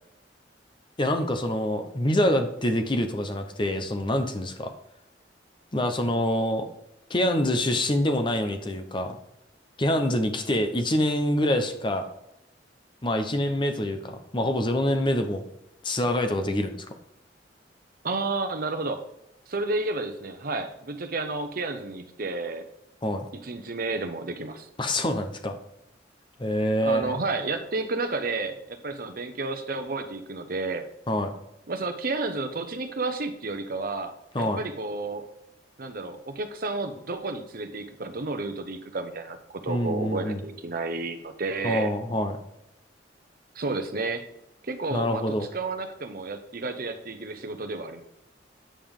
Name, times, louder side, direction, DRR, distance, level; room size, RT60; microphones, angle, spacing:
voice 1, 1.0-4.7 5.7-6.7 7.1-9.2 9.8-12.0 13.0-15.4 15.8-16.7 23.0-23.3 24.8-25.6 26.4-27.1 31.1-31.3 34.3-34.6 39.7-40.4 41.6-42.4 44.9-45.5, left 1 dB, 25° left, 6 dB, 0.9 m, -25 dB
voice 2, 18.0-19.0 19.5-22.7 23.3-24.7 26.8-30.9 31.7-35.3 35.8-41.9 43.5-44.2 44.6-48.0, right 3 dB, 50° right, 7 dB, 0.9 m, -31 dB
8.8 x 5.3 x 3.7 m, 0.87 s
head